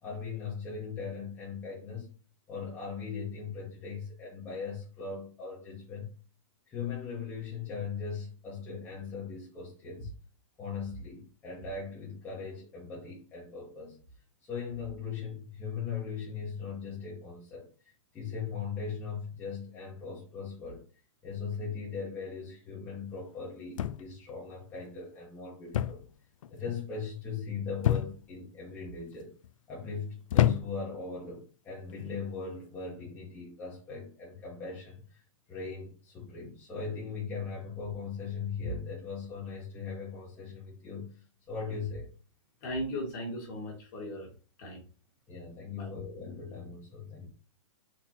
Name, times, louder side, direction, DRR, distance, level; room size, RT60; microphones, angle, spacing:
voice 1, 0.0-2.1 2.5-6.1 6.7-10.1 10.6-14.0 14.4-20.8 21.2-26.0 26.5-29.3 29.7-35.2 35.5-42.1 45.3-47.3, left 5 dB, 10° left, -7 dB, 1.3 m, -39 dB
sound 1, 23.8-24.3 25.7-26.1 26.4-26.8 27.8-28.4 29.1-29.5 30.3-31.0 31.9-32.2, left 11 dB, 80° left, 0.4 m, -28 dB
voice 2, 42.6-44.3 44.6-44.8 45.7-45.9, equal, 35° left, -1 dB, 1.9 m, -37 dB
4.4 x 4.0 x 2.9 m, 0.37 s
hypercardioid pair, 170°, 17 cm